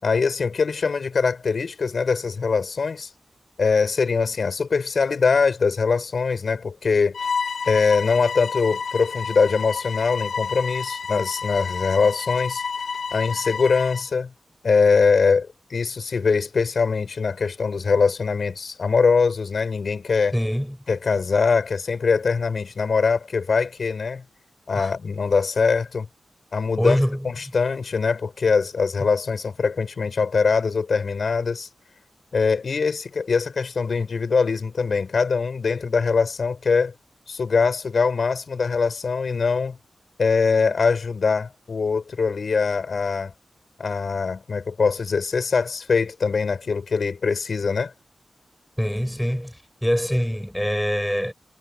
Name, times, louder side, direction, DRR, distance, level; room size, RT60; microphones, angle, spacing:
voice 1, 0.0-3.1 3.6-7.2 7.7-12.6 13.1-14.3 14.6-20.3 20.9-24.2 24.7-26.1 26.5-31.7 32.3-36.9 37.3-39.8 40.2-43.3 43.8-47.9, left 5 dB, 60° left, 6.4 m, -22 dB
Bowed string instrument, 7.1-14.1, left 5 dB, 90° left, 4.0 m, -30 dB
voice 2, 20.3-20.8 24.7-24.9 26.8-27.3 48.8-51.3, equal, ahead, 6.0 m, -24 dB
wide cardioid pair, 150°, 0 cm